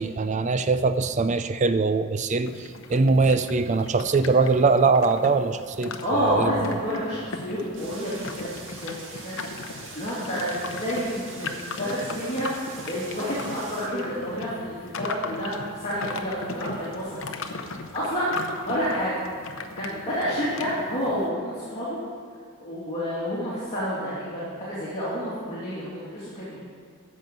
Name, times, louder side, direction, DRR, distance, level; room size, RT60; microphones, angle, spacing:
voice 1, 0.0-2.5 2.9-6.5, right 4 dB, 35° right, 11 dB, 0.4 m, -22 dB
sound 1, 2.4-21.3, left 3 dB, 60° left, 0.8 m, -38 dB
voice 2, 6.0-9.4 9.9-12.5 12.9-17.1 17.9-18.3 18.7-19.2 19.8-22.0 22.6-26.6, equal, 30° left, -10 dB, 2.8 m, -29 dB
sound 2, 7.7-13.9, right 3 dB, 60° right, 1.9 m, -43 dB
13.5 x 5.4 x 7.6 m, 2.2 s
head